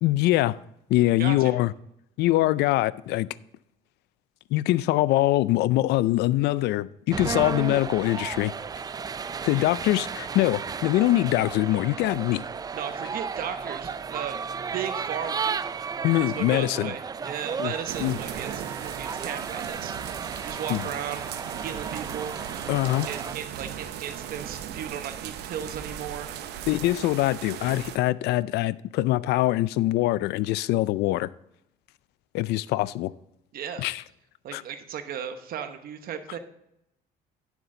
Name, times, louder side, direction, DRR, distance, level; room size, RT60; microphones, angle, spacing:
voice 1, 0.0-0.6 0.9-1.7 2.2-3.3 4.5-8.5 9.4-12.4 16.0-16.9 17.6-17.7 18.0-18.2 20.7-20.8 22.7-23.1 26.7-31.3 32.3-33.1 33.8-34.0 34.5-34.6, left 16 dB, 80° left, 0.4 m, -23 dB
voice 2, 1.2-1.6 9.5-9.8 12.7-14.4 14.7-15.5 16.2-20.0 20.4-21.3 21.6-22.3 22.8-26.3 33.5-33.9 34.4-36.4, right 8 dB, 60° right, 1.1 m, -36 dB
sound 1, 7.1-23.3, right 6 dB, 20° right, 0.3 m, -34 dB
Hail&Rain, 17.9-28.0, right 10 dB, 80° right, 0.8 m, -37 dB
10.0 x 7.1 x 3.8 m
cardioid pair, 110°, 17 cm